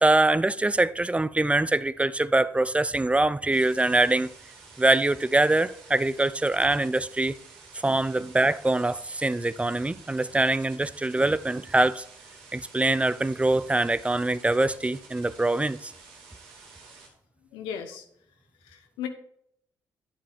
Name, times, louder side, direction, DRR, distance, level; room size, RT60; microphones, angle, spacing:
voice 1, 0.0-4.3 4.8-7.3 7.8-12.0 12.5-15.9, right 2 dB, 15° right, 0.5 m, -24 dB
sound 1, 3.5-17.1, right 4 dB, 85° right, 2.5 m, -50 dB
voice 2, 17.5-18.0 18.6-19.1, left 8 dB, 85° left, 1.0 m, -36 dB
9.7 x 7.1 x 3.6 m
supercardioid pair, 55°, 8 cm